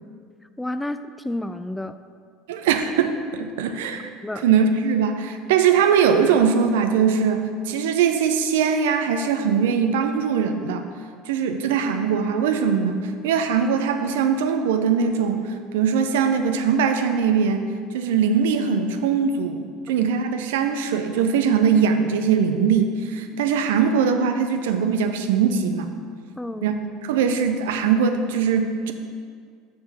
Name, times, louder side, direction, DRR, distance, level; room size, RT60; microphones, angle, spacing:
voice 1, 0.6-2.0 4.2-4.4 26.4-26.7, left 1 dB, 5° left, 11 dB, 0.3 m, -30 dB
voice 2, 2.5-4.1 4.4-10.8 11.3-25.9 26.6-26.7 27.0-28.9, right 6 dB, 70° right, 7 dB, 0.5 m, -21 dB
6.4 x 5.9 x 4.2 m, 2.1 s
figure-of-eight pair, 70°, 0 cm